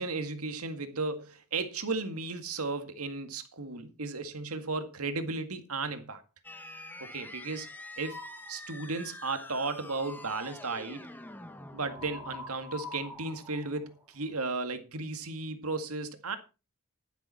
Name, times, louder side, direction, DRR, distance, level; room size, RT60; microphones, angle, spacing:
voice 1, 0.0-6.2 7.0-7.7 8.0-8.2 8.5-11.0 11.7-16.4, right 3 dB, 85° right, 1.9 m, -35 dB
sound 1, 6.4-13.0, left 1 dB, 10° left, 1.2 m, -46 dB
sound 2, 8.0-8.6 11.9-14.6, left 3 dB, 10° right, 3.2 m, -45 dB
11.5 x 11.0 x 4.3 m
head